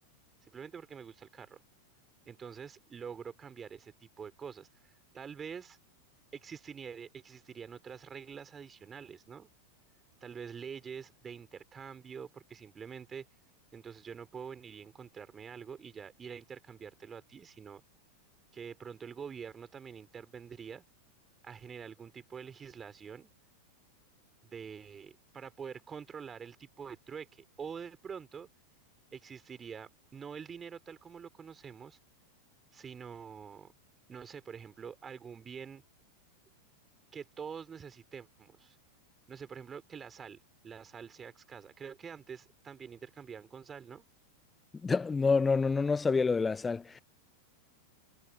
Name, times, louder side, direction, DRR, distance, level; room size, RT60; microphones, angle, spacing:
voice 1, 0.4-1.6 2.2-5.8 6.3-9.5 10.2-13.2 13.7-17.8 18.5-20.8 21.4-23.3 24.4-28.5 29.1-32.0 32.7-33.7 34.1-35.8 37.1-38.8 39.3-40.4 40.6-44.0, right 7 dB, 20° right, 4.3 m, -46 dB
voice 2, 44.8-47.0, left 4 dB, 15° left, 0.5 m, -27 dB
figure-of-eight pair, 90°, 0 cm